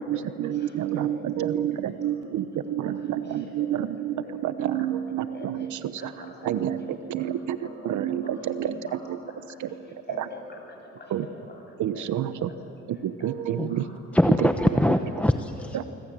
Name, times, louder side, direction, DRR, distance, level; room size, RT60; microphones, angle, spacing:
voice 1, 0.0-9.2 9.6-10.3 11.1-11.3 11.8-12.5 12.9-13.9 15.7-15.8, right 10 dB, 75° right, 12 dB, 1.1 m, -29 dB
voice 2, 0.5-1.2 2.8-2.9 3.2-3.4 3.7-3.8 5.3-5.5 5.8-6.5 7.6-7.7 8.2-8.3 8.6-9.0 9.2-9.8 10.1-11.1 11.9-12.0 13.2-13.9, left 3 dB, 35° left, 1 dB, 7.8 m, -45 dB
voice 3, 14.1-15.8, left 1 dB, 5° left, 7 dB, 0.9 m, -22 dB
25.5 x 25.0 x 7.7 m, 2.9 s
cardioid pair, 90°, 30 cm